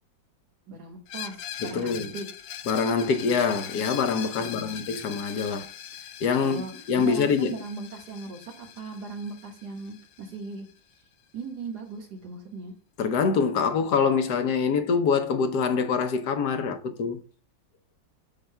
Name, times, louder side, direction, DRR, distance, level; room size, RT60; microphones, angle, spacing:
voice 1, 0.7-2.3 4.4-4.8 6.4-10.6 11.3-12.7, right 4 dB, 60° right, 2.2 m, -38 dB
Screech, 1.1-10.7, left 9 dB, 85° left, 1.4 m, -41 dB
voice 2, 1.6-2.1 2.7-5.7 6.2-6.6 6.9-7.6 13.0-17.2, left 5 dB, 65° left, 1.2 m, -25 dB
8.7 x 7.1 x 2.2 m
omnidirectional pair, 2.0 m